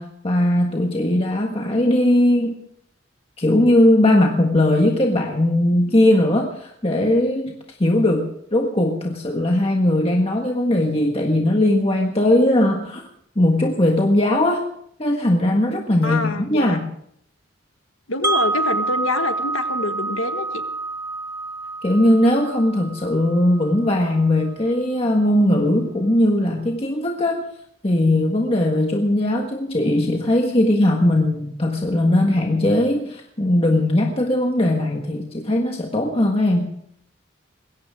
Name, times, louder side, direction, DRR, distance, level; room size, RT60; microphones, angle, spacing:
voice 1, 0.0-2.5 3.4-13.1 13.3-14.6 15.0-16.9 21.8-27.4 27.8-36.7, left 1 dB, 30° left, 1 dB, 1.5 m, -19 dB
voice 2, 16.0-16.8 18.1-20.6, left 3 dB, 85° left, 7 dB, 1.7 m, -26 dB
Wind chime, 18.2-24.2, right 3 dB, 10° right, 1.3 m, -27 dB
21.0 x 17.0 x 3.7 m, 0.70 s
head